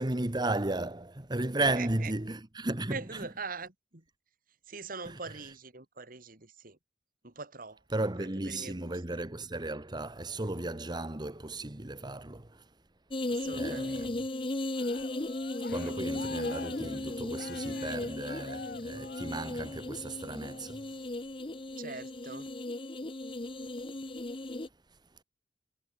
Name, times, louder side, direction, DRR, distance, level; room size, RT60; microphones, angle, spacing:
voice 1, 0.0-3.3 5.0-5.5 7.9-12.7 13.2-14.1 15.2-21.1 24.6-25.0, right 2 dB, 25° right, 1.3 m, -35 dB
voice 2, 1.8-2.1 2.9-4.0 4.7-6.8 7.2-7.8 8.2-9.0 13.3-14.1 21.8-22.5, right 4 dB, 55° right, 2.8 m, -43 dB
sound 1, 13.1-24.7, left 2 dB, 30° left, 0.9 m, -36 dB
Cheering, 14.7-19.9 20.4-20.8, left 4 dB, 60° left, 1.9 m, -47 dB
head